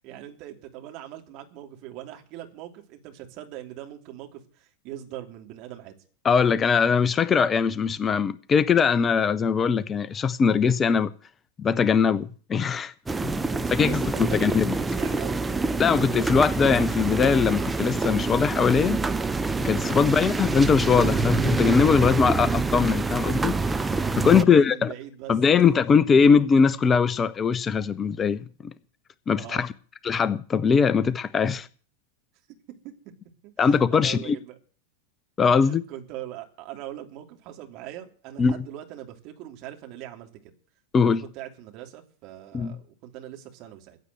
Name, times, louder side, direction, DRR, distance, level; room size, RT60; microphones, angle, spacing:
voice 1, 0.0-5.9 13.4-15.4 19.9-20.1 24.2-25.6 26.1-26.2 29.3-29.6 33.4-34.5 35.6-40.5 41.0-44.0, right 12 dB, 40° right, 3.0 m, -41 dB
voice 2, 6.2-11.1 11.6-12.9 13.2-13.4 13.7-14.7 15.8-19.0 19.6-23.5 24.2-24.9 25.3-28.7 29.3-29.7 30.0-31.7 33.6-34.4 35.4-35.8 38.4-38.5 40.9-41.2 42.5-42.8, left 6 dB, 20° left, 0.6 m, -21 dB
sound 1, 13.1-24.4, right 3 dB, 10° right, 0.8 m, -26 dB
15.5 x 8.2 x 7.8 m
figure-of-eight pair, 90°, 0 cm